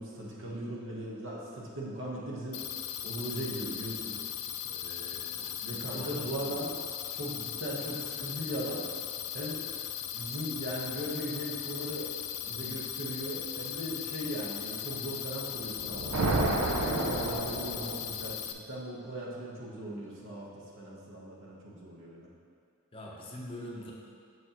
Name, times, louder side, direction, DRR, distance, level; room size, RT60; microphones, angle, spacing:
voice 1, 0.0-2.6 3.0-4.2 5.6-6.8 7.1-8.8 9.3-9.6 10.1-12.1 12.4-16.2 16.7-22.3, right 1 dB, 60° right, -4 dB, 1.2 m, -38 dB
sound 1, 2.5-18.5, left 10 dB, 85° left, 0.4 m, -38 dB
voice 2, 4.7-6.3 22.9-23.9, equal, 25° left, -3 dB, 0.7 m, -44 dB
sound 2, 15.7-18.3, right 2 dB, 80° right, 0.6 m, -30 dB
7.2 x 6.2 x 3.0 m, 2.3 s
head